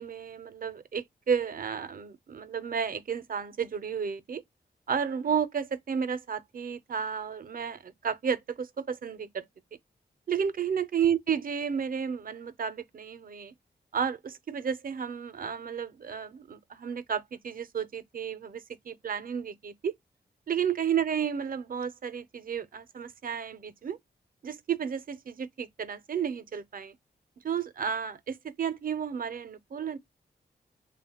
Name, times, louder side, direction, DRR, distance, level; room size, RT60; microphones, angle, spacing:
voice 1, 0.0-4.4 4.9-9.4 10.3-13.5 13.9-19.9 20.5-24.0 24.4-26.9 27.4-30.0, right 7 dB, 55° right, 0.4 m, -32 dB
2.8 x 2.1 x 2.7 m
cardioid pair, 50°, 18 cm